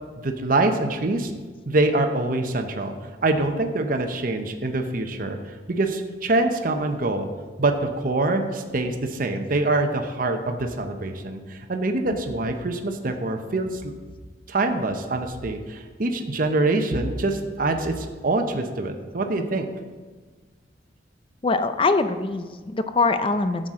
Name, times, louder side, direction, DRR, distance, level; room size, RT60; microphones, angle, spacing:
voice 1, 0.2-1.3 1.7-2.9 3.2-7.3 7.6-13.9 14.5-19.7, right 2 dB, 50° right, 5 dB, 0.8 m, -25 dB
voice 2, 21.4-23.7, left 3 dB, 30° left, 9 dB, 0.5 m, -23 dB
11.5 x 7.7 x 3.7 m, 1.4 s
head